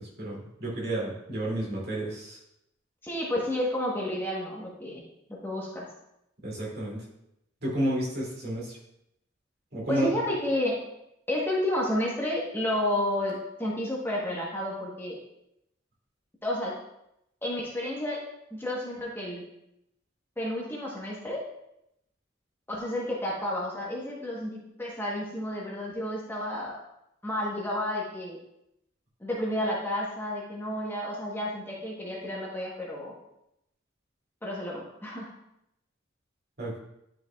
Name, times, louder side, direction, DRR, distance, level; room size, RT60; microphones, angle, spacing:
voice 1, 0.0-2.4 6.4-7.0 7.6-8.8 9.7-10.1 36.6-36.8, right 1 dB, 50° right, -5 dB, 2.5 m, -31 dB
voice 2, 3.0-5.0 5.4-5.9 9.9-10.8 11.3-15.2 16.4-16.7 17.4-18.2 18.5-19.4 20.4-21.4 22.7-26.8 27.2-28.4 29.2-33.1 34.4-35.3, left 1 dB, 10° left, -4 dB, 1.0 m, -31 dB
11.0 x 4.8 x 2.3 m, 0.82 s
head